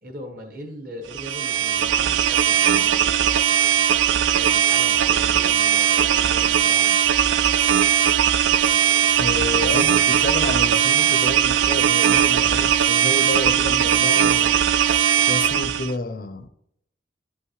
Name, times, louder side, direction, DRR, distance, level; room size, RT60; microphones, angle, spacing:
voice 1, 0.0-3.4 4.1-6.9, left 1 dB, 50° right, 1.3 m, -40 dB
sound 1, 1.1-15.9, right 10 dB, 85° right, 0.3 m, -19 dB
voice 2, 9.2-14.6 15.2-16.5, left 2 dB, 50° left, 0.5 m, -29 dB
11.5 x 5.6 x 3.1 m
head